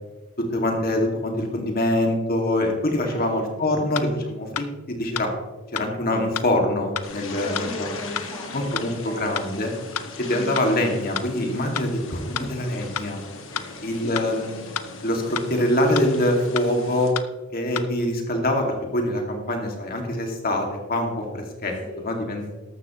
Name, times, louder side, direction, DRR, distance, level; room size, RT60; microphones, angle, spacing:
voice 1, 0.4-5.3 5.7-7.9 8.5-9.7 10.2-13.2 13.8-14.6 15.0-17.1 17.5-21.7 22.0-22.5, left 1 dB, 45° left, 2 dB, 2.2 m, -24 dB
voice 2, 2.7-3.9 7.3-9.4 10.2-10.6 12.3-12.5 13.5-14.3 21.8-22.0, left 1 dB, 20° left, -4 dB, 1.9 m, -38 dB
sound 1, 4.0-4.1 4.6-4.7 5.2-5.3 5.8-5.9 6.4-6.5 7.0-7.1 7.6-7.7 8.2-8.3 8.8-8.9 9.4-9.5 10.0-10.1 10.6-10.7 11.2-11.3 11.8-11.9 12.4-12.5 13.0-13.1 13.6-13.7 14.2-14.3 14.8-14.9 15.4-15.5 16.0-16.1 16.6-16.7 17.2-17.3 17.8-17.9, left 9 dB, 80° left, 0.6 m, -28 dB
sound 2, 7.0-17.1, left 3 dB, 60° left, 1.8 m, -39 dB
14.0 x 12.0 x 3.1 m, 1.2 s
head